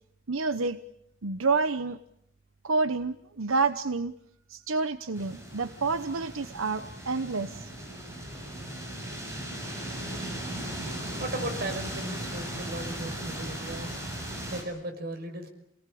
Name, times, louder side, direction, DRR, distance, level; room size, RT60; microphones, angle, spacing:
voice 1, 0.3-0.8 1.2-2.0 2.6-4.1 4.5-7.7, right 4 dB, 90° right, 11 dB, 1.0 m, -28 dB
sound 1, 5.1-14.6, right 1 dB, 15° right, 6.9 m, -37 dB
voice 2, 11.2-14.0 14.5-15.5, right 1 dB, 50° right, 4 dB, 5.5 m, -36 dB
30.0 x 19.0 x 8.6 m, 0.75 s
head